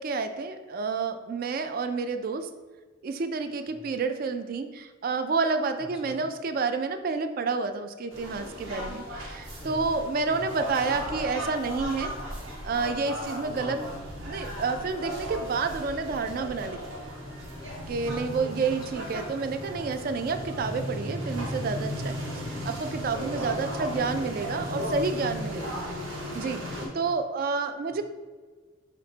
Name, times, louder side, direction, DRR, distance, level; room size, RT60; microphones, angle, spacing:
voice 1, 0.0-2.5 3.0-12.1 12.6-13.8 14.3-16.8 17.9-22.2 22.7-25.6 26.3-26.6 27.0-28.0, right 4 dB, 45° right, 9 dB, 0.3 m, -29 dB
voice 2, 3.5-4.0 5.8-6.3 9.6-9.9 10.3-11.1 13.5-14.0 17.9-18.3 18.7-19.1 22.2-22.8 23.3-23.8 25.5-26.0 26.6-27.1 27.9-28.0, left 1 dB, 20° left, 2 dB, 0.4 m, -45 dB
sound 1, 8.1-26.9, equal, 85° right, 1.1 m, -35 dB
5.8 x 2.1 x 3.8 m, 1.4 s
head